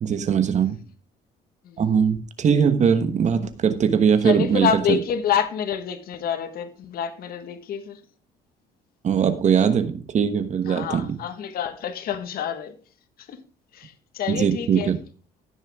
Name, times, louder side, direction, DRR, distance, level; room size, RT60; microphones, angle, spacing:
voice 1, 0.0-0.8 1.8-5.0 9.0-11.2 14.3-15.0, right 7 dB, 45° right, 1.2 m, -21 dB
voice 2, 4.2-8.0 10.6-12.7 13.3-13.4 13.7-14.9, left 8 dB, 60° left, 1.6 m, -27 dB
15.5 x 6.4 x 3.6 m
cardioid pair, 110°, 17 cm